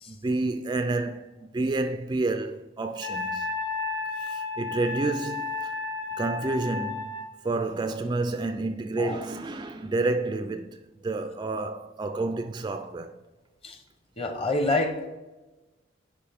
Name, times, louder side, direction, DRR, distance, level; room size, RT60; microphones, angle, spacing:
voice 1, 0.1-3.5 4.2-5.7 6.2-7.1 7.4-13.2, right 2 dB, 20° right, 0.3 m, -29 dB
Wind instrument woodwind instrument, 3.0-7.3, left 4 dB, 85° left, 0.9 m, -32 dB
voice 2, 14.2-15.2, left 2 dB, 30° left, 0.9 m, -27 dB
10.0 x 4.7 x 3.5 m
head